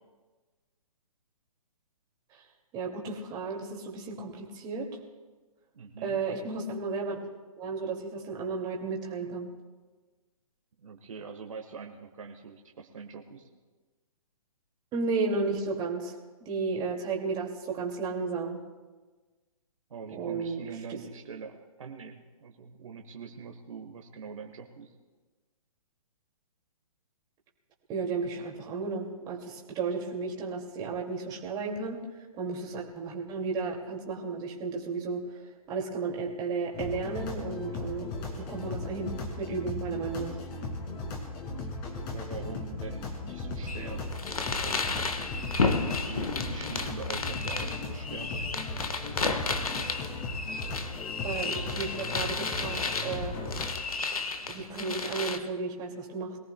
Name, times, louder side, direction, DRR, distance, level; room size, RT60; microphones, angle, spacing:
voice 1, 2.7-4.9 6.0-7.2 7.6-9.5 14.9-16.2 16.4-18.6 20.1-20.6 20.9-21.0 27.9-32.0 32.3-35.2 35.7-40.4 51.2-53.3 54.5-56.4, right 4 dB, 20° right, 0 dB, 2.2 m, -33 dB
voice 2, 5.7-6.2 10.8-13.5 19.9-24.9 42.1-44.1 44.6-45.5 46.0-48.7, right 5 dB, 60° right, 3 dB, 1.3 m, -44 dB
sound 1, 36.7-53.7, left 2 dB, 30° left, 2.4 m, -37 dB
sound 2, 43.7-55.4, left 4 dB, 75° left, 1.3 m, -33 dB
22.5 x 17.0 x 2.2 m, 1.3 s
figure-of-eight pair, 130°, 19 cm